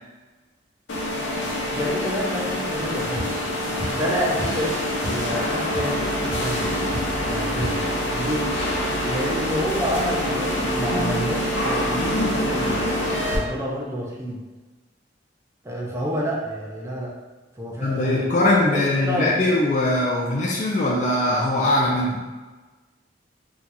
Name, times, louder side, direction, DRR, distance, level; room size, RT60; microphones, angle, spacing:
sound 1, 0.9-13.4, left 1 dB, 85° left, 0.7 m, -25 dB
voice 1, 1.7-3.5 3.9-4.8 5.1-6.9 7.2-7.8 8.1-8.5 9.0-12.8 13.3-14.4 15.6-17.1 17.6-18.3 18.7-19.5, equal, 15° right, -4 dB, 0.5 m, -29 dB
sound 2, 3.1-3.3 3.8-4.0 4.4-4.6 5.0-5.3 5.5-6.0 6.3-6.4 6.9-7.2 7.6-7.8, equal, 35° right, 1.3 m, -32 dB
sound 3, 5.9-13.1, right 5 dB, 75° right, 0.4 m, -38 dB
voice 2, 17.8-22.2, left 1 dB, 40° left, -3 dB, 0.4 m, -21 dB
2.8 x 2.3 x 3.8 m, 1.3 s
head